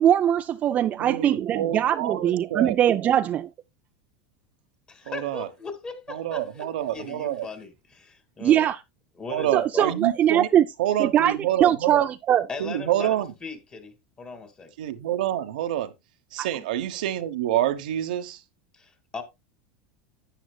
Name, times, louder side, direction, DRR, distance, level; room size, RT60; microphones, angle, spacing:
voice 1, 0.0-3.5 8.4-8.8 9.5-10.6 11.0-12.5 16.4-16.5, right 10 dB, 35° right, 0.4 m, -21 dB
voice 2, 1.0-2.7 5.1-5.5 6.1-7.5 9.3-10.5 10.8-12.0 12.6-13.3 14.8-15.9 16.3-18.4, right 12 dB, 80° right, 1.0 m, -27 dB
voice 3, 4.9-8.7 9.2-9.9 12.5-14.7 18.7-19.2, left 4 dB, 25° left, 2.3 m, -39 dB
10.5 x 9.1 x 2.3 m
supercardioid pair, 120°, 5 cm